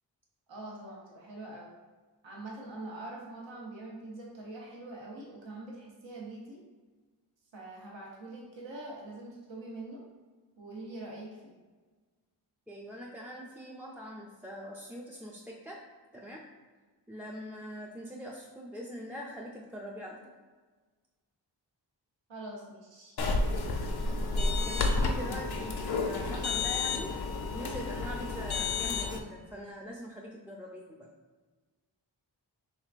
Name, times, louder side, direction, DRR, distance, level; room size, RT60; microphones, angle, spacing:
voice 1, 0.5-1.7 2.2-6.6 7.5-10.0 10.6-11.5 22.3-23.2, right 2 dB, 85° right, -4 dB, 0.9 m, -44 dB
voice 2, 12.7-15.8 16.1-16.5 17.1-20.2 24.1-27.2 27.5-31.1, equal, 5° right, -2 dB, 0.3 m, -43 dB
sound 1, 23.2-29.2, left 3 dB, 60° left, 0.5 m, -31 dB
4.6 x 3.3 x 2.4 m, 1.4 s
wide cardioid pair, 70°, 44 cm